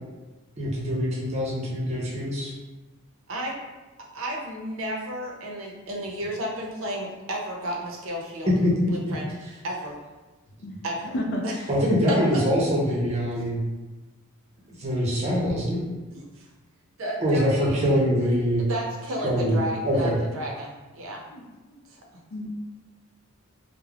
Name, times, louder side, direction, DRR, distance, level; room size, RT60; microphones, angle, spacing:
voice 1, 0.6-2.5 8.5-8.7 9.1-9.2 11.7-13.6 14.8-15.9 17.2-18.6 19.2-20.2, equal, 30° right, -5 dB, 0.7 m, -24 dB
voice 2, 3.3-3.6 4.1-8.5 8.9-9.3 9.6-10.0 10.8-11.1 11.4-11.6 12.1-12.2 16.1-16.5 17.0-17.9 18.6-21.2 21.9-22.0, right 1 dB, 70° right, -1 dB, 0.5 m, -33 dB
voice 3, 21.3-21.8 22.3-22.5, equal, 60° left, 1 dB, 0.4 m, -32 dB
3.2 x 2.0 x 2.3 m, 1.2 s
head